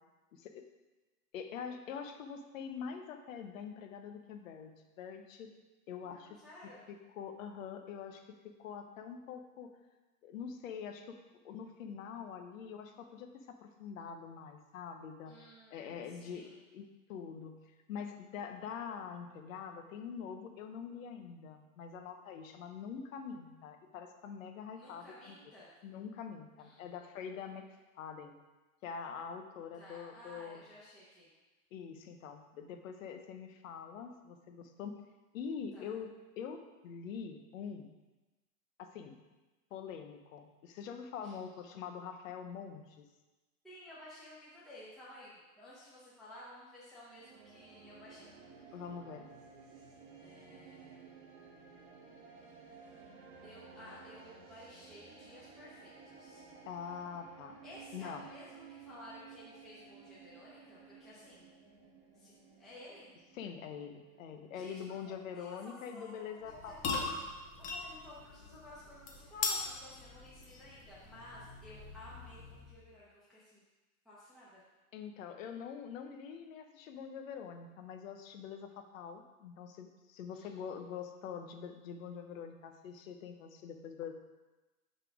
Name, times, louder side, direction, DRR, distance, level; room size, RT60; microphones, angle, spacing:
voice 1, 0.3-0.6 1.3-5.5 5.9-6.4 6.9-9.7 10.2-11.2 11.4-15.4 15.7-17.5 17.9-25.3 25.8-27.7 28.0-28.4 28.8-30.6 31.7-34.9 35.3-37.9 38.8-39.2 39.7-43.1 48.7-49.3 56.7-57.6 57.9-58.2 63.3-67.1 74.9-84.1, left 7 dB, 65° left, 6 dB, 0.9 m, -45 dB
voice 2, 6.0-6.8 15.3-16.6 24.7-25.7 26.6-26.9 29.8-31.3 35.7-35.9 41.2-41.3 43.6-48.8 50.2-51.1 53.4-56.4 57.6-61.5 62.2-63.1 64.5-66.8 67.6-73.6 74.0-74.6 80.3-80.5, left 1 dB, ahead, -9 dB, 0.9 m, -54 dB
sound 1, 47.2-65.4, right 5 dB, 40° right, 1.3 m, -56 dB
sound 2, 66.4-72.8, left 4 dB, 20° left, 0.5 m, -41 dB
5.7 x 5.1 x 4.9 m, 1.1 s
supercardioid pair, 145°, 44 cm